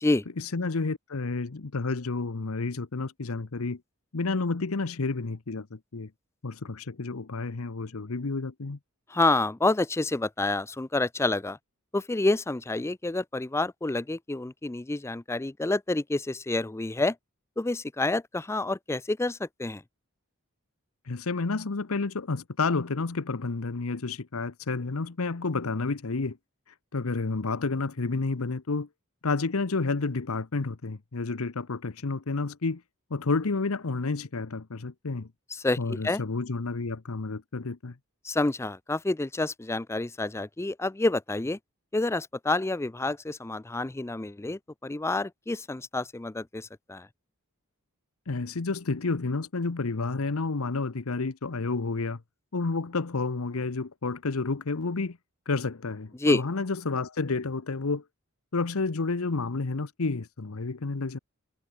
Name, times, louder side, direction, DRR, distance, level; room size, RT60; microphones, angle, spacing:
voice 1, 0.4-3.8 4.1-6.1 6.4-8.8 21.1-26.4 26.9-28.9 29.2-32.8 33.1-35.3 35.8-37.9 48.3-52.2 52.5-55.2 55.5-58.0 58.5-61.2, left 3 dB, 70° left, 0.9 m, -30 dB
voice 2, 9.1-11.6 11.9-17.2 17.6-19.8 35.5-36.2 38.2-41.6 41.9-47.1 56.2-56.4, left 2 dB, 10° left, 0.4 m, -28 dB
head